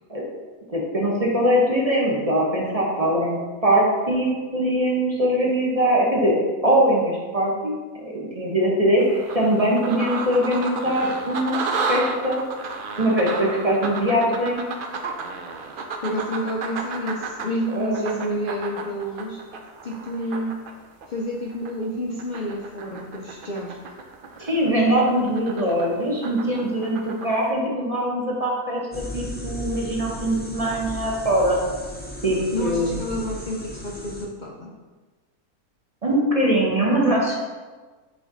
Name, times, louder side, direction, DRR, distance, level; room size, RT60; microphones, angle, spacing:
voice 1, 0.7-6.3 6.6-11.6 11.8-12.4 13.0-14.7 17.7-18.4 24.4-31.6 32.2-33.0 36.0-37.4, right 1 dB, 30° right, -3 dB, 0.9 m, -22 dB
sound 1, 9.0-21.9 22.2-27.4, right 4 dB, 85° right, 0.4 m, -32 dB
voice 2, 15.7-19.4 19.8-20.6 21.1-23.8 32.5-34.7, equal, 80° left, -2 dB, 0.4 m, -30 dB
sound 2, 28.9-34.3, left 1 dB, 15° left, 0.4 m, -35 dB
7.4 x 3.3 x 3.9 m, 1.3 s
omnidirectional pair, 1.6 m